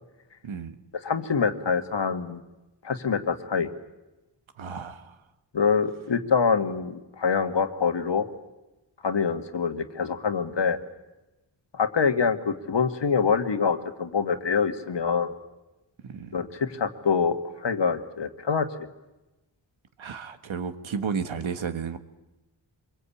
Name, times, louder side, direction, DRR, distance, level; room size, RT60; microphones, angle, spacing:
voice 1, 0.4-0.7 4.6-5.2 16.1-16.4 20.0-22.0, right 6 dB, 85° right, 9 dB, 1.6 m, -32 dB
voice 2, 1.0-2.4 2.8-3.7 5.5-8.3 9.0-10.8 11.7-15.3 16.3-18.7, left 5 dB, 65° left, 7 dB, 1.9 m, -25 dB
24.5 x 22.5 x 8.6 m, 1.0 s
wide cardioid pair, 75°, 46 cm